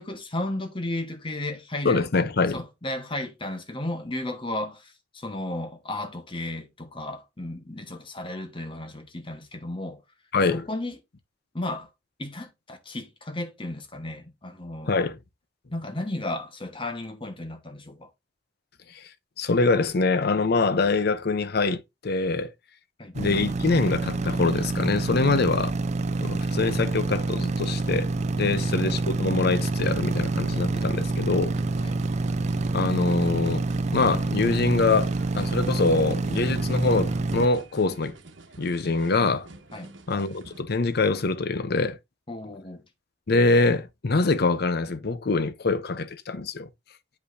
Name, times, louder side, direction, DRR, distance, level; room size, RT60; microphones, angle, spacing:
voice 1, 0.0-2.2 2.5-10.0 10.5-11.0 11.5-11.9 12.2-15.0 15.7-18.1 23.0-23.1 28.4-28.7 31.8-32.0 39.7-39.9 42.3-42.8, left 1 dB, 30° left, 1.2 m, -34 dB
voice 2, 1.8-2.6 10.3-10.7 14.9-15.2 18.9-19.0 19.4-22.5 23.1-25.7 26.2-28.1 28.4-31.5 32.7-38.1 38.6-39.5 40.1-42.0 43.3-46.7, left 3 dB, 55° left, 0.7 m, -24 dB
sound 1, 23.1-37.5, right 3 dB, 35° right, 0.4 m, -27 dB
sound 2, 31.5-40.6, right 2 dB, 75° right, 1.2 m, -47 dB
8.3 x 5.3 x 2.6 m
head